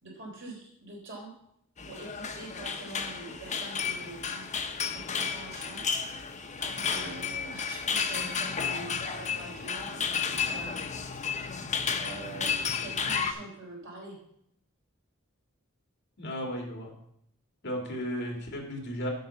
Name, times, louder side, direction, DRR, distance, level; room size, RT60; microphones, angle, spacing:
voice 1, 0.0-1.3 1.9-6.0 6.6-11.5 12.0-14.2, right 2 dB, 60° right, -2 dB, 3.7 m, -45 dB
sound 1, 1.8-13.3, left 6 dB, 35° left, 0.8 m, -32 dB
voice 2, 16.2-16.9 17.6-19.1, equal, 55° left, 1 dB, 2.1 m, -34 dB
7.8 x 6.0 x 6.9 m, 0.73 s
head